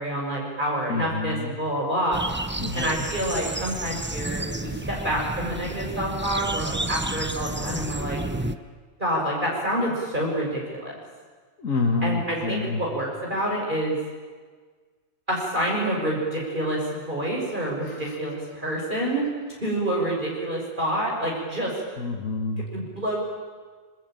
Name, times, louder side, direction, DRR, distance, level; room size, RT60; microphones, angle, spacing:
voice 1, 0.0-2.2 2.7-8.2 9.0-10.9 12.0-14.0 15.3-19.3 19.6-21.7 22.7-23.2, right 1 dB, 35° right, -3 dB, 6.4 m, -27 dB
voice 2, 0.9-1.5 2.6-2.9 11.6-12.8 18.0-18.1 22.0-22.7, left 3 dB, 75° left, 3 dB, 2.1 m, -27 dB
sound 1, 2.1-8.6, right 2 dB, 10° right, 0.6 m, -31 dB
26.0 x 23.5 x 9.2 m, 1.5 s
omnidirectional pair, 1.4 m